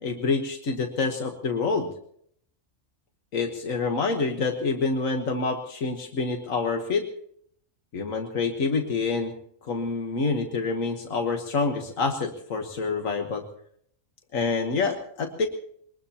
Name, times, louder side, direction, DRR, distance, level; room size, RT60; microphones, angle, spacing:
voice 1, 0.0-1.9 3.3-7.1 7.9-9.3 9.6-13.5 14.3-15.5, left 4 dB, 90° left, 4 dB, 1.7 m, -27 dB
23.0 x 19.5 x 2.9 m, 0.66 s
omnidirectional pair, 1.3 m